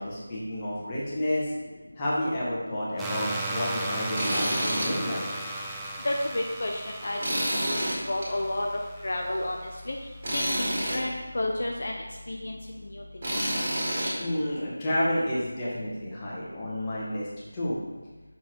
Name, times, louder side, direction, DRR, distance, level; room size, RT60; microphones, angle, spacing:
voice 1, 0.0-1.5 2.0-5.2 14.2-17.3 17.5-17.8, left 1 dB, 20° left, -7 dB, 1.3 m, -30 dB
sound 1, 3.0-9.8, right 2 dB, 5° right, 0.4 m, -36 dB
Tools, 4.1-4.9 5.3-5.4 7.2-8.3 10.2-11.0 13.2-14.1, right 1 dB, 35° right, 1.8 m, -28 dB
voice 2, 6.0-8.7 9.0-10.0 10.3-12.0 12.3-13.0, left 1 dB, 55° left, 1 dB, 0.6 m, -31 dB
6.5 x 4.2 x 3.8 m, 1.2 s
figure-of-eight pair, 170°, 0 cm